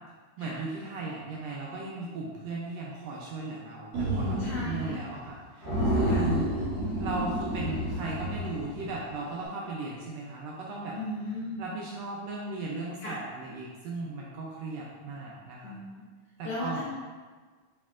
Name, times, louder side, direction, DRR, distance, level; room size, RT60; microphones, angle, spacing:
voice 1, 0.4-6.5 7.0-11.0 11.6-15.7 16.4-16.9, right 3 dB, 80° right, -4 dB, 1.5 m, -37 dB
sound 1, 3.9-4.9 5.2-5.3 5.6-9.0, right 1 dB, 55° right, 1.3 m, -29 dB
voice 2, 4.4-5.0 6.1-6.2 10.9-11.6 13.0-13.2 15.6-16.0 16.4-16.9, left 2 dB, 85° left, -5 dB, 1.3 m, -36 dB
4.4 x 4.3 x 2.4 m, 1.4 s
omnidirectional pair, 3.3 m